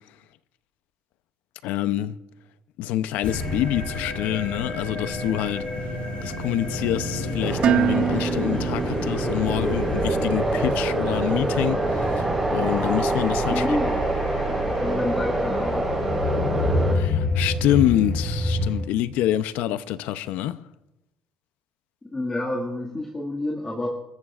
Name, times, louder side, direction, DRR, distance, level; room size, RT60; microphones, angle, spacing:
voice 1, 1.6-2.1 2.8-5.6 6.2-13.6 16.9-20.6, left 13 dB, 80° left, 0.7 m, -26 dB
sound 1, 3.2-18.8, left 1 dB, 50° left, 4.5 m, -29 dB
sound 2, 7.4-16.9, right 2 dB, 10° right, 4.2 m, -26 dB
Dishes pots and pans, 7.6-9.7, right 9 dB, 45° right, 0.5 m, -25 dB
voice 2, 13.5-14.0 14.7-15.9 22.1-23.9, left 1 dB, 15° left, 2.0 m, -28 dB
29.5 x 14.0 x 2.5 m
cardioid pair, 135°, 3 cm